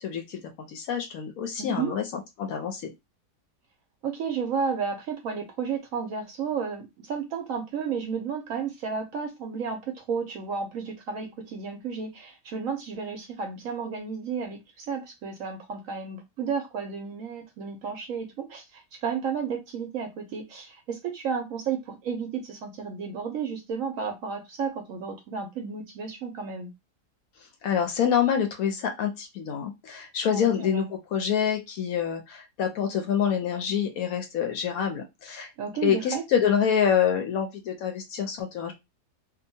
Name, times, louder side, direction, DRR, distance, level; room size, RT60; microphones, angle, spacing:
voice 1, 0.0-0.4 0.7-2.0 2.4-2.9 27.6-30.9 31.1-35.5 35.8-38.7, left 8 dB, 70° left, 0.9 m, -26 dB
voice 2, 1.6-1.9 4.0-26.7 30.3-30.9 35.6-36.2, right 6 dB, 70° right, 0.9 m, -32 dB
2.7 x 2.3 x 2.6 m
omnidirectional pair, 1.7 m